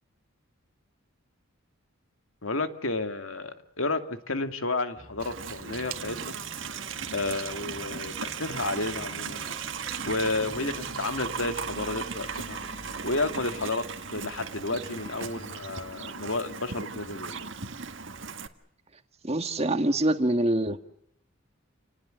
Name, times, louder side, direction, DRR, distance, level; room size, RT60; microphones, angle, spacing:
voice 1, 2.4-6.3 7.1-9.5 10.1-12.6 13.0-13.9 14.1-17.5, left 2 dB, 75° left, 7 dB, 2.5 m, -31 dB
Aircraft, 4.9-15.9, left 1 dB, 25° left, 2.4 m, -47 dB
sound 1, 5.0-12.1, right 11 dB, 85° right, 2.1 m, -48 dB
Livestock farm animals working animals, 5.2-18.5, right 6 dB, 60° right, 1.7 m, -37 dB
voice 2, 19.2-20.8, right 1 dB, 30° right, 8 dB, 1.7 m, -25 dB
29.5 x 19.0 x 8.0 m, 0.75 s
head